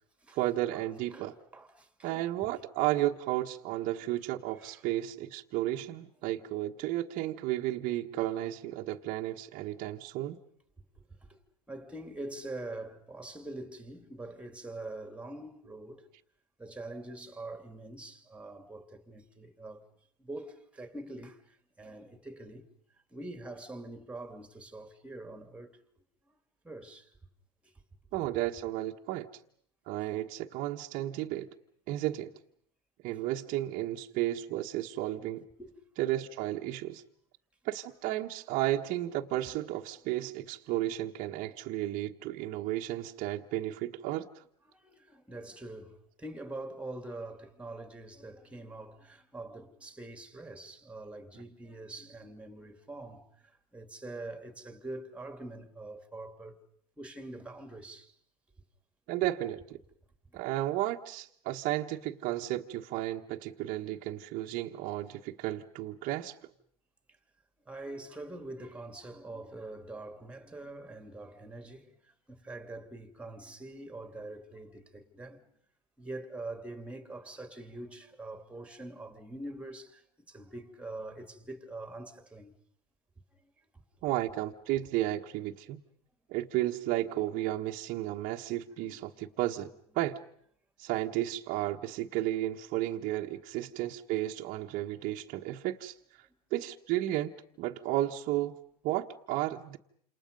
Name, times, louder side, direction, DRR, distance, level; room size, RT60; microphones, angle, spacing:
voice 1, 0.3-1.3 2.0-10.4 28.1-29.3 29.9-31.5 31.9-32.3 33.0-35.4 36.0-37.0 37.6-44.4 59.1-59.8 60.3-66.3 84.0-85.8 86.3-90.2 90.8-98.6 98.8-99.8, right 15 dB, 45° right, 1.4 m, -33 dB
voice 2, 1.1-2.3 4.6-4.8 11.0-11.1 11.3-11.4 11.7-16.1 16.6-19.9 20.2-22.6 23.1-25.8 26.3-26.4 26.6-27.1 27.6-27.7 35.6-35.7 44.7-56.6 57.0-58.1 60.3-60.4 67.7-75.4 76.0-82.5 83.4-83.5 88.8-89.3, right 2 dB, 5° right, 2.6 m, -44 dB
28.5 x 27.5 x 5.4 m
hypercardioid pair, 110°, 20 cm